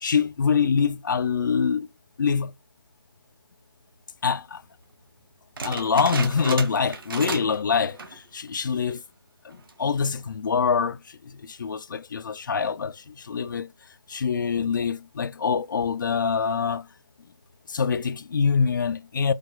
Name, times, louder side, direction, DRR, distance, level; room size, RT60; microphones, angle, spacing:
voice 1, 0.0-1.9 2.2-2.5 4.2-4.6 5.6-9.0 9.4-11.0 11.3-13.7 14.1-16.9 17.7-19.3, left 6 dB, 45° left, 0.4 m, -25 dB
sound 1, 5.6-7.6 7.9-8.3 8.7-8.8 9.5-9.9, right 3 dB, 55° right, 1.2 m, -33 dB
5.0 x 3.9 x 2.3 m
hypercardioid pair, 170°, 14 cm